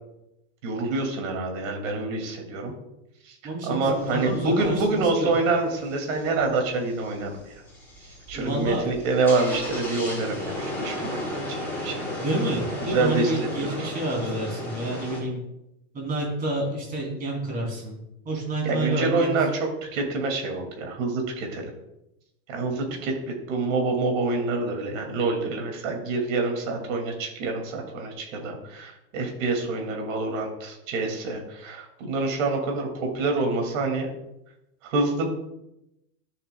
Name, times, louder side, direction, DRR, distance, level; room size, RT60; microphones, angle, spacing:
voice 1, 0.6-2.7 3.3-7.6 8.3-11.2 11.5-12.1 12.8-13.3 13.6-13.9 18.6-21.7 22.5-34.1 34.8-35.3, right 3 dB, 55° right, 3 dB, 2.4 m, -27 dB
voice 2, 3.4-5.3 8.3-8.9 12.2-15.4 15.9-18.0 18.2-19.4, right 1 dB, 20° right, -1 dB, 3.0 m, -29 dB
sound 1, 3.9-15.2, left 1 dB, 5° left, 3.4 m, -35 dB
13.0 x 7.1 x 2.3 m, 0.87 s
supercardioid pair, 150°, 46 cm